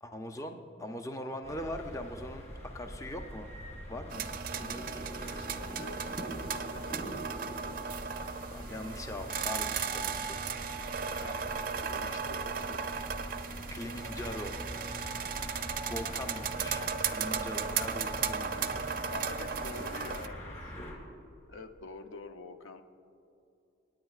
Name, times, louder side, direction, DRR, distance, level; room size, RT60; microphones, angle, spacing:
voice 1, 0.0-2.5 2.7-3.5 3.9-4.3 4.6-5.1 8.5-10.4 12.8-13.0 13.7-14.5 15.9-18.8, left 1 dB, 15° left, 5 dB, 0.5 m, -41 dB
sound 1, 1.4-20.9, equal, 30° left, 2.9 m, -44 dB
sound 2, 4.1-20.3, right 6 dB, 45° right, 0.4 m, -36 dB
voice 2, 5.4-7.8 11.1-11.4 11.7-12.8 13.7-13.8 16.0-16.1 19.1-20.7 21.4-22.8, left 3 dB, 80° left, 7 dB, 0.6 m, -47 dB
25.5 x 9.5 x 2.4 m, 2.7 s
head